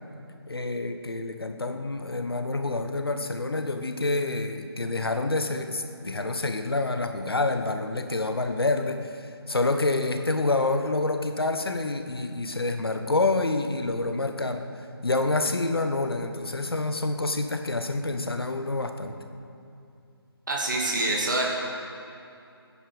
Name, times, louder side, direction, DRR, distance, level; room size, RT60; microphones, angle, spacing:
voice 1, 0.5-19.2, left 2 dB, 65° left, 7 dB, 1.2 m, -27 dB
voice 2, 20.5-21.5, right 2 dB, 50° right, -1 dB, 2.3 m, -26 dB
20.0 x 10.0 x 4.9 m, 2.6 s
figure-of-eight pair, 150°, 13 cm